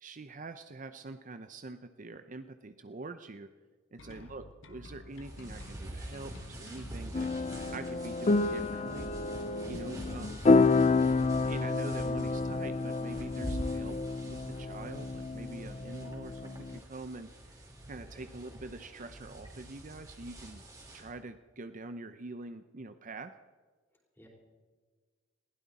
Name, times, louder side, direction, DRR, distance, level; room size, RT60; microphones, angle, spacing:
voice 1, 0.0-3.5 3.9-7.3 7.7-9.1 9.7-10.3 11.2-14.0 14.3-17.6 17.9-20.6 20.9-23.3, right 2 dB, 40° right, 10 dB, 0.6 m, -45 dB
sound 1, 4.0-8.0, left 2 dB, 65° left, 1.2 m, -51 dB
voice 2, 4.0-4.4 18.1-18.3 24.2-24.3, left 1 dB, 10° left, 0 dB, 3.9 m, -57 dB
sound 2, 5.1-21.1, right 1 dB, 15° right, 3.0 m, -45 dB
sound 3, 7.1-16.8, left 3 dB, 30° left, 0.5 m, -29 dB
21.0 x 16.0 x 4.2 m, 1.4 s
head